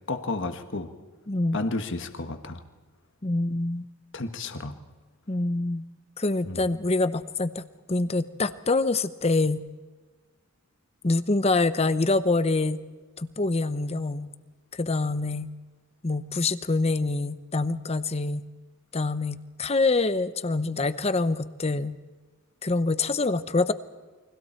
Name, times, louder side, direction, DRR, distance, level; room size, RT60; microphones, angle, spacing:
voice 1, 0.1-0.9 1.5-2.6 4.1-4.8 6.4-6.6, left 2 dB, 55° left, 7 dB, 1.5 m, -32 dB
voice 2, 1.3-1.6 3.2-3.8 5.3-5.8 6.2-7.6 7.9-9.6 11.0-12.8 13.2-14.3 14.7-15.5 16.0-18.4 18.9-22.0 22.6-23.7, left 3 dB, 30° left, 13 dB, 0.8 m, -25 dB
29.5 x 24.0 x 4.5 m, 1.4 s
head